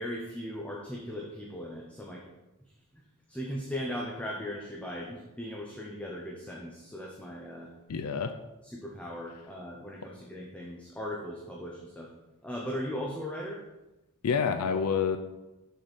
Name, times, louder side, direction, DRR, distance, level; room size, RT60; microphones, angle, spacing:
voice 1, 0.0-2.3 2.6-2.7 3.3-7.7 8.6-12.1 12.4-13.6, equal, 5° left, -2 dB, 0.7 m, -38 dB
voice 2, 7.9-8.4 14.2-15.2, left 6 dB, 80° left, 9 dB, 0.5 m, -28 dB
6.6 x 6.5 x 4.1 m, 1.0 s
head